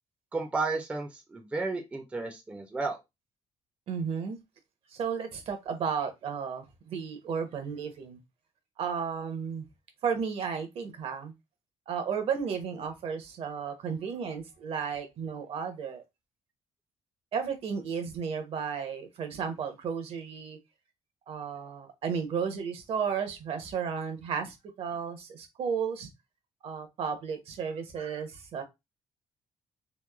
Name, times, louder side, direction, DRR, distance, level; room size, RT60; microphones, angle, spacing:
voice 1, 0.3-3.0, right 3 dB, 10° right, 0.4 m, -32 dB
voice 2, 3.9-4.4 4.9-8.2 8.8-9.7 10.0-11.3 11.9-16.0 17.3-20.6 21.3-26.1 26.6-28.6, right 6 dB, 60° right, 0.7 m, -33 dB
2.9 x 2.0 x 2.2 m
cardioid pair, 145°, 11 cm